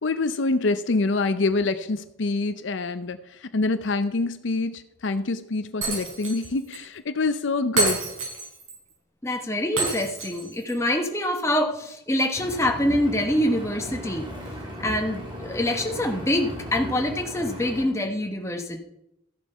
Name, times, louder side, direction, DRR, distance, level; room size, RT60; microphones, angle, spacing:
voice 1, 0.0-8.0, left 3 dB, 70° left, 11 dB, 0.6 m, -26 dB
Shatter, 5.8-6.5 6.7-6.8 7.8-8.7 9.8-10.7, right 3 dB, 85° right, 5.5 m, -28 dB
voice 2, 9.2-14.3 14.8-18.8, left 1 dB, 15° left, 3 dB, 1.3 m, -25 dB
Engine, 12.4-17.9, equal, 25° right, 2.4 m, -37 dB
14.0 x 7.2 x 5.6 m, 0.83 s
head